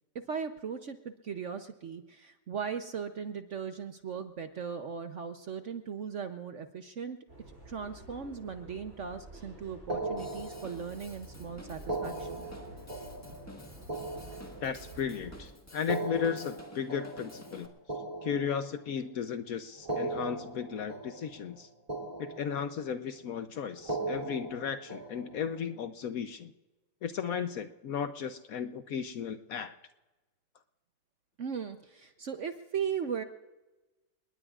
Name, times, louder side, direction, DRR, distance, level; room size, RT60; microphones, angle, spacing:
voice 1, 0.1-7.2 7.7-12.5 31.4-33.2, right 6 dB, 55° right, 8 dB, 0.9 m, -38 dB
sound 1, 7.3-15.4, right 2 dB, 40° right, 7.6 m, -50 dB
sound 2, 9.9-11.1 11.8-15.1 15.8-19.1 19.8-21.6 21.9-23.0 23.8-25.6, right 2 dB, 20° right, 2.9 m, -39 dB
Drum kit / Drum, 10.2-17.7, left 1 dB, 10° left, 1.4 m, -52 dB
voice 2, 14.6-17.7 18.2-21.7 22.2-26.5 27.0-29.7, left 7 dB, 60° left, 10 dB, 1.0 m, -35 dB
29.5 x 20.0 x 2.4 m, 1.1 s
omnidirectional pair, 1.9 m